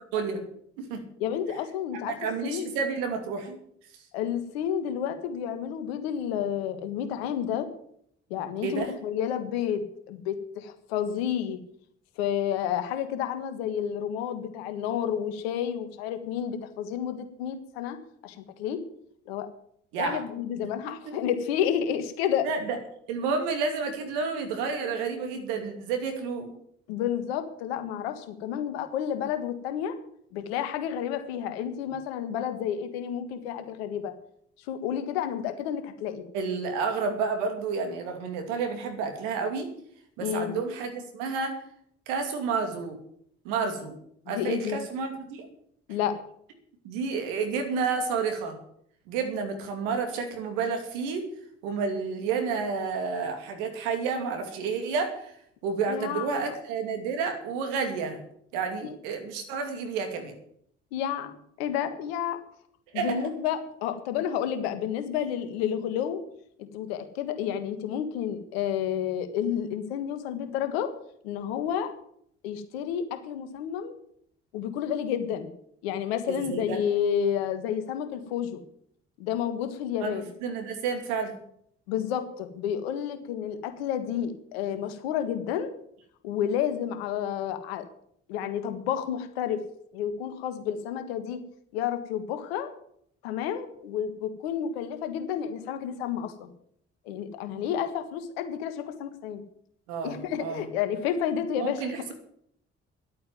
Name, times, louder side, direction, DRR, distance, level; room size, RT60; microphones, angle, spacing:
voice 1, 0.1-0.5 0.8-1.0 2.2-3.6 8.6-8.9 19.9-20.2 21.1-21.2 22.4-22.8 23.1-26.5 36.3-39.7 40.2-41.6 42.1-43.0 43.4-43.9 44.3-45.5 46.8-48.6 49.1-51.3 51.6-55.3 55.6-58.2 58.5-60.3 62.9-63.3 76.3-76.8 80.0-81.4 99.9-100.6 101.6-102.1, right 5 dB, 85° right, 5 dB, 2.7 m, -30 dB
voice 2, 1.2-2.1 2.4-2.7 4.1-7.7 8.3-11.6 12.2-18.0 18.2-18.8 19.3-19.5 20.0-22.5 26.9-30.0 30.3-34.1 34.7-36.2 40.2-40.6 44.2-44.8 45.9-46.1 55.9-56.5 58.8-58.9 60.9-62.4 62.9-66.2 66.6-70.9 71.2-71.9 72.4-73.9 74.5-75.5 75.8-78.6 79.2-80.3 81.9-85.7 86.2-87.8 88.3-89.6 89.9-91.4 91.7-92.7 93.2-96.5 97.0-99.4 100.0-101.9, left 9 dB, 85° left, 9 dB, 1.6 m, -30 dB
11.0 x 8.6 x 9.4 m, 0.68 s
hypercardioid pair, 50°, 30 cm